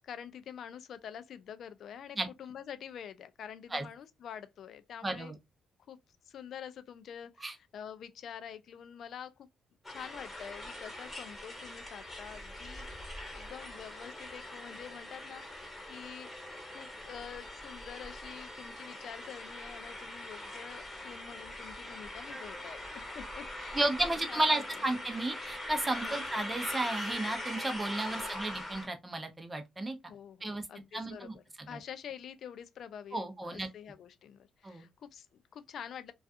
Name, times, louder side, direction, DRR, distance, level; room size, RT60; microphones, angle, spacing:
voice 1, 0.0-5.3 5.9-6.0 6.3-9.5 9.9-12.9 13.3-23.8 24.3-24.8 26.0-26.2 28.1-28.4 30.1-36.1, left 8 dB, 65° left, 0.3 m, -47 dB
voice 2, 5.0-5.4 7.4-7.5 23.7-30.0 30.4-30.7 30.9-31.8 33.1-33.7 34.6-34.9, right 1 dB, 20° right, 0.6 m, -33 dB
sound 1, 9.8-28.9, left 1 dB, 15° left, 1.2 m, -42 dB
2.3 x 2.3 x 2.5 m
cardioid pair, 90°, 0 cm